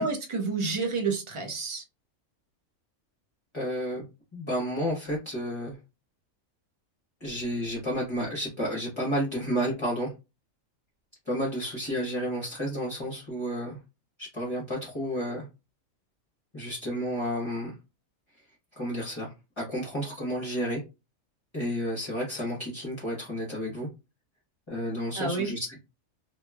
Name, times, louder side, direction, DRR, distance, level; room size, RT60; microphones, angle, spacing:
voice 1, 0.0-1.8 25.1-25.5, right 4 dB, 40° right, 4 dB, 0.4 m, -29 dB
voice 2, 3.5-4.0 4.3-5.8 7.2-10.1 11.3-13.8 14.2-15.5 16.5-17.7 18.8-20.8 21.5-23.9 24.7-25.8, equal, 25° left, -5 dB, 0.9 m, -31 dB
2.9 x 2.7 x 2.3 m, 0.27 s
omnidirectional pair, 1.4 m